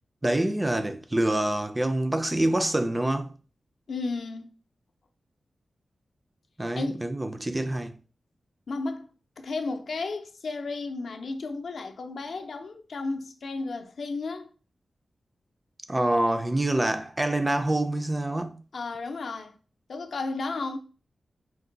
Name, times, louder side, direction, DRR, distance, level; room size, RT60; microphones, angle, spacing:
voice 1, 0.2-3.3 6.6-7.9 15.9-18.6, right 1 dB, 15° right, 0.3 m, -26 dB
voice 2, 3.9-4.5 6.8-7.1 8.7-9.1 9.4-14.5 18.7-19.5 19.9-20.8, left 3 dB, 65° left, 0.5 m, -33 dB
4.6 x 2.2 x 3.8 m
wide cardioid pair, 155°, 0 cm